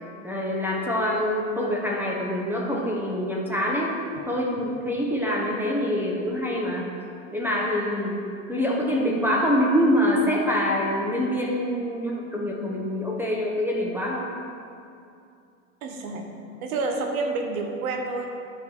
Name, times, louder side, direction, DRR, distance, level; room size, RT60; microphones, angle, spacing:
voice 1, 0.2-4.0 4.3-6.9 7.3-8.2 8.5-14.3, equal, 5° right, -3 dB, 1.1 m, -25 dB
voice 2, 15.8-16.3 16.6-18.3, right 3 dB, 90° right, 3 dB, 1.4 m, -28 dB
9.1 x 4.7 x 6.6 m, 2.5 s
supercardioid pair, 120°, 41 cm